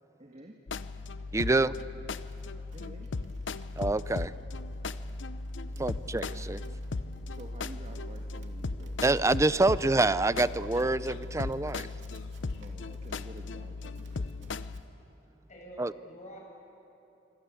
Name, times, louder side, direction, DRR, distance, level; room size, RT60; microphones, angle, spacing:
voice 1, 0.2-0.5 2.7-3.1 5.6-6.0 7.3-9.0 12.5-14.7, right 1 dB, 35° right, 2 dB, 1.7 m, -50 dB
sound 1, 0.7-14.8, left 3 dB, 80° left, 0.7 m, -37 dB
voice 2, 1.3-1.7 3.8-4.3 5.8-6.6 9.0-11.9 15.8-15.9, right 2 dB, 15° right, 16 dB, 0.5 m, -26 dB
Run, 2.3-14.8, right 2 dB, 85° right, 2.6 m, -60 dB
voice 3, 15.5-16.4, right 1 dB, 40° left, 0 dB, 7.8 m, -47 dB
26.5 x 26.0 x 8.5 m, 2.8 s
head